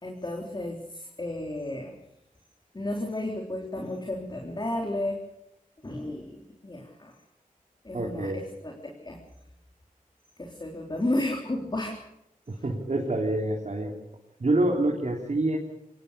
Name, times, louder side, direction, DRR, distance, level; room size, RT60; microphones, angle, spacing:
voice 1, 0.0-2.0 2.7-5.2 5.8-7.1 7.8-8.8 9.0-9.2 10.4-12.0, left 1 dB, 30° left, 1 dB, 3.7 m, -32 dB
voice 2, 7.9-8.4 12.5-13.9 14.4-15.6, right 2 dB, 50° right, 0 dB, 3.5 m, -26 dB
24.5 x 19.5 x 6.9 m, 0.82 s
wide cardioid pair, 85°, 15 cm